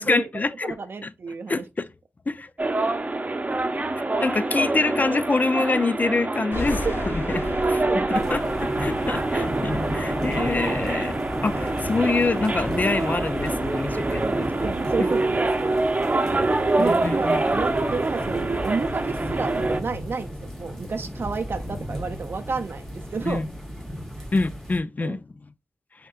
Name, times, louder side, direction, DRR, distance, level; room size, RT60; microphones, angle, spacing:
voice 1, 0.0-0.7 1.0-1.1 1.5-1.9 2.3-2.5 4.0-7.4 7.7-11.2 11.4-14.7 15.0-15.1 16.8-17.4 23.3-23.4 24.3-25.2, left 3 dB, 45° left, 0.4 m, -26 dB
voice 2, 0.6-1.6 6.9-7.0 7.9-8.4 9.1-9.2 14.0-15.8 16.3-23.4 25.0-25.2, right 4 dB, 65° right, 0.4 m, -31 dB
sound 1, 2.6-19.8, right 2 dB, 35° right, 0.8 m, -26 dB
sound 2, 6.5-15.0, left 2 dB, 70° left, 0.8 m, -37 dB
sound 3, 8.1-24.8, equal, 10° left, 1.8 m, -34 dB
5.5 x 3.6 x 2.4 m
wide cardioid pair, 60°, 4 cm